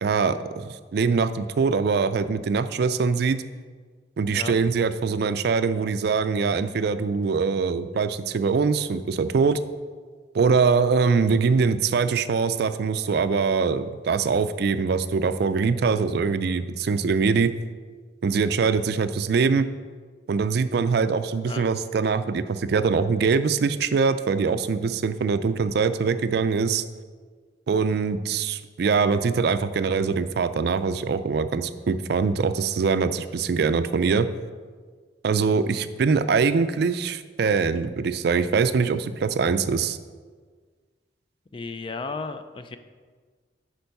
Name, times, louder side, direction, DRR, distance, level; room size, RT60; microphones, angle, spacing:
voice 1, 0.0-3.4 4.2-9.6 10.3-17.5 18.2-19.7 20.3-26.8 27.7-34.3 35.2-40.0, right 5 dB, 60° right, 12 dB, 0.4 m, -23 dB
voice 2, 41.5-42.8, left 4 dB, 30° left, 9 dB, 0.4 m, -34 dB
8.9 x 4.5 x 5.4 m, 1.5 s
head